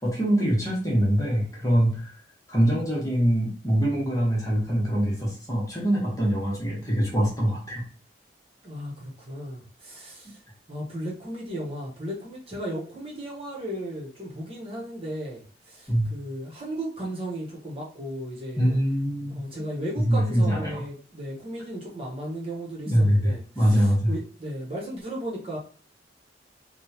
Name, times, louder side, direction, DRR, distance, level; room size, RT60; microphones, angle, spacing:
voice 1, 0.0-2.1 2.5-7.8 15.9-16.1 18.6-19.4 20.0-20.8 22.9-24.1, equal, 20° left, -5 dB, 1.2 m, -23 dB
voice 2, 8.6-10.4 10.7-18.7 19.3-25.6, right 1 dB, 30° right, -4 dB, 1.2 m, -35 dB
3.6 x 2.4 x 2.9 m, 0.41 s
head